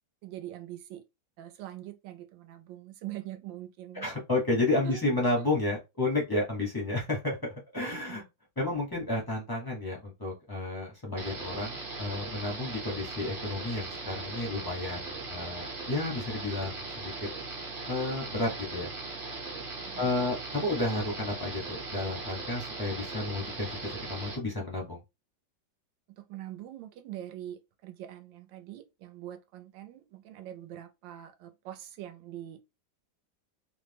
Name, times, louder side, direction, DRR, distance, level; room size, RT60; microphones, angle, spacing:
voice 1, 0.2-1.0 1.4-4.1 4.8-5.0 5.4-5.5 7.9-8.2 19.9-20.1 26.2-32.6, right 13 dB, 80° right, 1.3 m, -43 dB
voice 2, 4.0-8.2 8.6-17.1 17.9-18.9 20.0-25.0, left 2 dB, 30° left, 0.4 m, -31 dB
sound 1, 11.2-24.4, right 3 dB, 45° right, 0.8 m, -39 dB
3.2 x 2.1 x 3.3 m
omnidirectional pair, 2.0 m